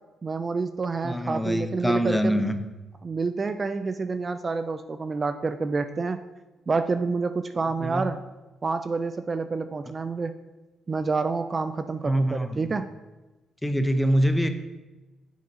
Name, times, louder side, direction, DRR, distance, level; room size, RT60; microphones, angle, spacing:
voice 1, 0.2-2.4 3.0-6.2 6.7-8.2 8.6-10.4 10.9-12.9, right 4 dB, 35° right, 9 dB, 0.3 m, -28 dB
voice 2, 1.0-2.6 7.8-8.1 12.0-12.7 13.6-14.5, equal, 5° left, 8 dB, 0.6 m, -25 dB
7.7 x 3.9 x 4.0 m, 1.1 s
cardioid pair, 90°, 0 cm